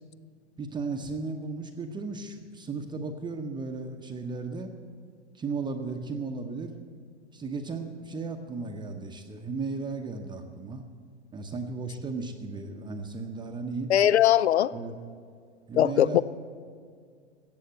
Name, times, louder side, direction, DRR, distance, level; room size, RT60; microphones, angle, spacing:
voice 1, 0.6-4.7 5.3-6.7 7.3-10.8 11.3-13.9 14.7-15.0 15.7-16.2, right 4 dB, 15° right, 4 dB, 0.8 m, -35 dB
voice 2, 13.9-14.7 15.7-16.2, left 11 dB, 70° left, 19 dB, 0.6 m, -20 dB
14.5 x 8.6 x 7.9 m, 2.1 s
figure-of-eight pair, 105°, 34 cm